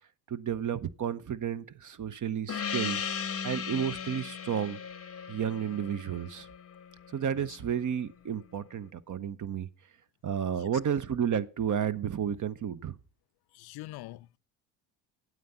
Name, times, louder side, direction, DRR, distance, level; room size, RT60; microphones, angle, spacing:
voice 1, 0.3-3.0 3.4-4.8 5.3-6.5 7.1-9.7 10.2-13.0, right 8 dB, 40° right, 0.8 m, -32 dB
Gong, 2.5-7.5, left 7 dB, 30° left, 0.8 m, -37 dB
voice 2, 13.5-14.4, left 17 dB, 55° left, 0.5 m, -44 dB
9.2 x 8.0 x 5.6 m
supercardioid pair, 70°, 48 cm